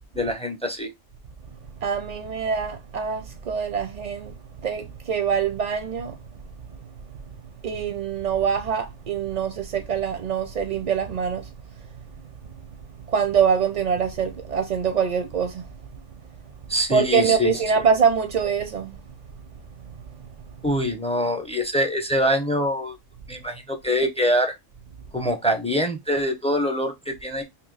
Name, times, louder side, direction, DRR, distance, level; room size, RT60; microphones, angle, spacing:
voice 1, 0.1-0.9 16.7-17.6 20.6-23.0 23.3-24.5 25.1-27.4, equal, 10° left, 0.4 m, -24 dB
voice 2, 1.8-4.3 4.6-6.2 7.6-11.5 13.1-15.7 16.9-19.0, right 7 dB, 55° right, 0.5 m, -24 dB
2.9 x 2.8 x 3.7 m
omnidirectional pair, 1.2 m